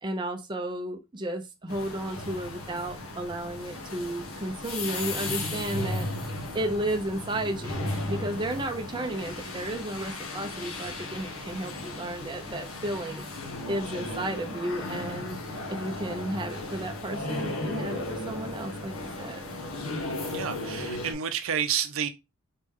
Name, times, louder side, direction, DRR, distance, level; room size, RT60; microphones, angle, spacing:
voice 1, 0.0-6.1 6.5-13.2 13.7-15.4 15.7-19.4, right 1 dB, 20° right, 0.6 m, -33 dB
sound 1, 1.7-21.1, left 2 dB, 75° left, 1.2 m, -35 dB
voice 2, 20.3-22.1, right 8 dB, 70° right, 0.5 m, -29 dB
4.1 x 3.4 x 3.5 m
head